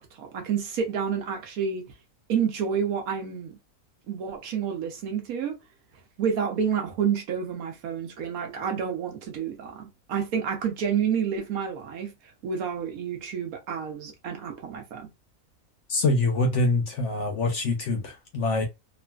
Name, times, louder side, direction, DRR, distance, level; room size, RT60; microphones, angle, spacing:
voice 1, 0.0-1.8 2.3-3.6 4.1-5.5 6.2-12.1 12.4-15.1, right 7 dB, 70° right, 1.1 m, -29 dB
voice 2, 15.9-18.6, left 2 dB, 60° left, 0.8 m, -25 dB
3.1 x 2.4 x 2.2 m
omnidirectional pair, 1.6 m